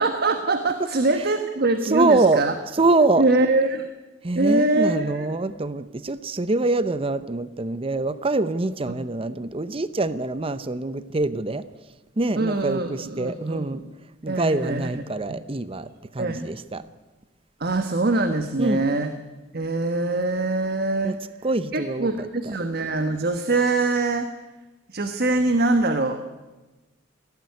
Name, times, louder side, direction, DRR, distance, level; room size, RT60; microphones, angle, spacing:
voice 1, 0.0-2.5 3.2-3.9 4.3-5.3 8.9-9.0 12.4-13.8 14.3-15.0 16.2-16.5 17.6-19.1 19.5-21.2 21.7-24.3 24.9-26.2, right 2 dB, 55° right, 8 dB, 1.3 m, -23 dB
voice 2, 1.8-2.4 2.7-3.3 4.2-11.6 12.2-13.8 14.2-16.8 18.6-18.8 21.0-21.2 21.4-22.5, right 2 dB, 30° right, 14 dB, 0.7 m, -24 dB
20.5 x 16.5 x 9.6 m, 1.1 s
head